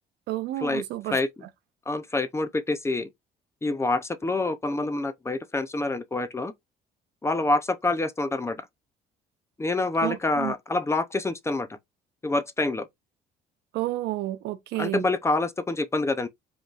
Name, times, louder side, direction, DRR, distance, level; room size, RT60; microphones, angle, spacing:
voice 1, 0.3-1.2 10.0-10.5 13.7-15.0, right 15 dB, 80° right, 0.7 m, -30 dB
voice 2, 1.9-3.1 3.6-6.5 7.2-8.7 9.6-11.7 12.2-12.9 14.8-16.3, left 2 dB, 15° left, 0.6 m, -26 dB
5.0 x 3.1 x 2.4 m
cardioid pair, 110°, 17 cm